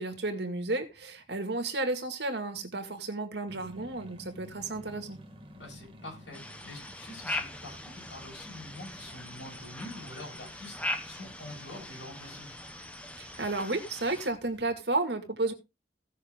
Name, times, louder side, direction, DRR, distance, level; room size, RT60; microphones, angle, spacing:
voice 1, 0.0-5.2 13.2-15.5, right 2 dB, 65° right, 2.1 m, -32 dB
sound 1, 3.5-14.7, right 1 dB, 30° right, 2.0 m, -52 dB
voice 2, 5.6-12.6, left 2 dB, 75° left, 7.7 m, -46 dB
sound 2, 6.3-14.3, left 1 dB, 5° left, 1.2 m, -40 dB
16.5 x 6.5 x 3.7 m
head